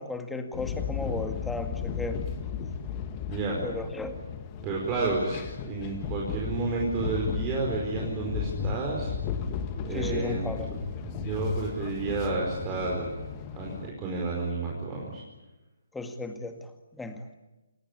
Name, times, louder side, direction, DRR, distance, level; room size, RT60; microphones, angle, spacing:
voice 1, 0.0-2.2 3.6-4.3 9.9-10.7 15.9-17.3, left 2 dB, 5° left, 6 dB, 2.0 m, -35 dB
sound 1, 0.5-13.9, left 6 dB, 20° left, 2.2 m, -34 dB
voice 2, 3.3-3.6 4.6-5.4 5.7-9.1 9.8-10.8 11.0-13.1 13.5-15.2, right 3 dB, 20° right, -2 dB, 4.9 m, -31 dB
28.0 x 19.5 x 10.0 m, 1.1 s
figure-of-eight pair, 140°, 0 cm